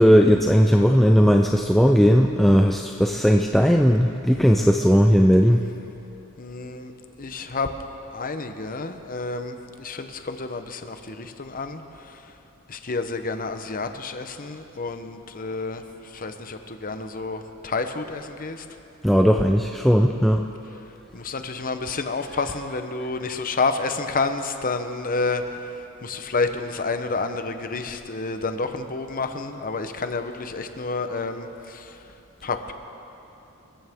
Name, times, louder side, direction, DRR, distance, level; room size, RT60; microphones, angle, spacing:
voice 1, 0.0-5.6 19.0-20.4, equal, ahead, 2 dB, 0.4 m, -17 dB
voice 2, 6.4-6.9 7.2-7.7 8.1-11.8 12.7-15.8 16.1-18.6 21.1-25.4 26.0-31.8 32.4-32.7, left 3 dB, 40° left, 7 dB, 0.9 m, -29 dB
27.0 x 14.5 x 3.7 m, 2.9 s
head